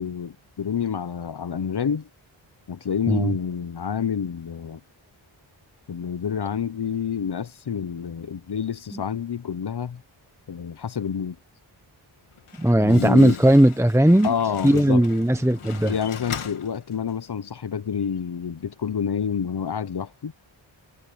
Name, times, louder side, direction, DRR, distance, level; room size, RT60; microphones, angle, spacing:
voice 1, 0.0-2.1 2.7-4.8 5.9-10.0 10.5-11.4 12.8-13.4 14.2-15.0 15.8-20.3, left 7 dB, 50° left, 1.0 m, -28 dB
Slam, 12.2-17.4, left 7 dB, 85° left, 2.1 m, -40 dB
voice 2, 12.6-14.3 14.6-15.9, right 1 dB, 5° right, 1.2 m, -17 dB
cardioid pair, 55°, 49 cm